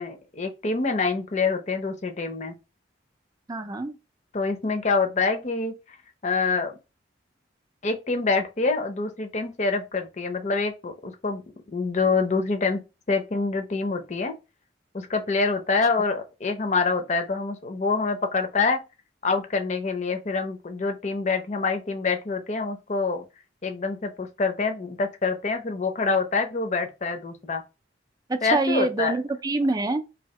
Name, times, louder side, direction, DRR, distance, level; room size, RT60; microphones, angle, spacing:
voice 1, 0.0-2.5 4.3-6.0 6.2-6.7 7.8-11.4 11.7-14.3 14.9-18.8 19.2-23.2 23.6-27.6 28.4-29.1, left 4 dB, 40° left, 0.6 m, -26 dB
voice 2, 3.5-4.0 28.3-30.0, right 2 dB, 20° right, 0.4 m, -25 dB
2.8 x 2.7 x 4.1 m
head